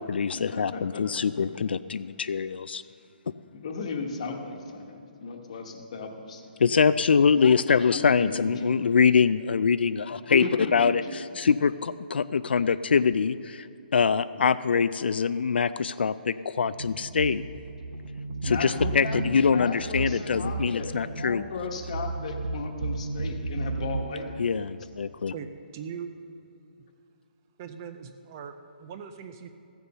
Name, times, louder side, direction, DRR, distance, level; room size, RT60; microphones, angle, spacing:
voice 1, 0.0-2.8 6.6-10.5 10.7-13.7 13.9-17.4 18.4-21.4 24.4-25.3, left 6 dB, 85° left, 13 dB, 0.3 m, -24 dB
voice 2, 0.5-1.0 3.5-6.5 7.9-8.8 10.3-11.0 18.4-24.7, left 4 dB, 40° left, 4 dB, 1.2 m, -35 dB
sound 1, 16.6-24.0, right 3 dB, 65° right, 1.0 m, -34 dB
voice 3, 25.0-25.5 25.7-26.1 27.6-29.5, right 7 dB, 20° right, 8 dB, 0.3 m, -40 dB
14.5 x 6.9 x 6.6 m, 2.7 s
hypercardioid pair, 175°, 5 cm